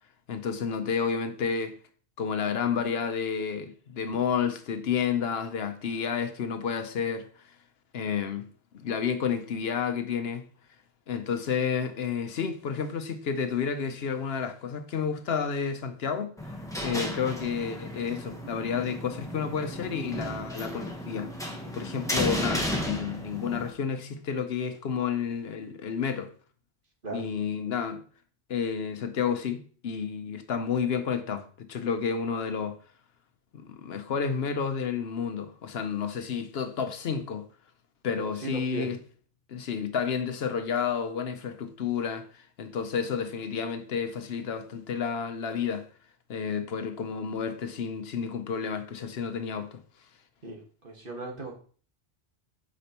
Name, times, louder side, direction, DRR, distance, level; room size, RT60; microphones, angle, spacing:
voice 1, 0.3-1.8 2.2-7.6 7.9-8.5 8.7-10.5 11.1-16.6 16.8-26.3 27.1-28.0 28.5-32.8 33.5-37.5 38.0-39.0 39.5-45.9 46.3-49.8, left 6 dB, 70° left, 0.9 m, -31 dB
sound 1, 16.4-23.7, left 1 dB, 5° left, 1.0 m, -34 dB
voice 2, 38.4-38.9 50.4-51.5, right 3 dB, 50° right, 1.7 m, -37 dB
8.4 x 5.2 x 2.9 m
omnidirectional pair, 1.1 m